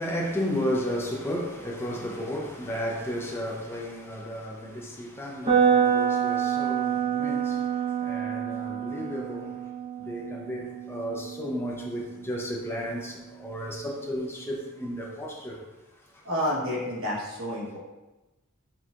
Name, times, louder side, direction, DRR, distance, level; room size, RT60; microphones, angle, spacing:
voice 1, 0.0-9.6 10.0-15.6 16.0-16.3, equal, 10° left, 0.5 m, -33 dB
sound 1, 5.4-13.4, right 7 dB, 30° right, 0.9 m, -28 dB
voice 2, 16.2-17.8, equal, 65° right, 1.2 m, -29 dB
4.4 x 3.7 x 2.4 m
head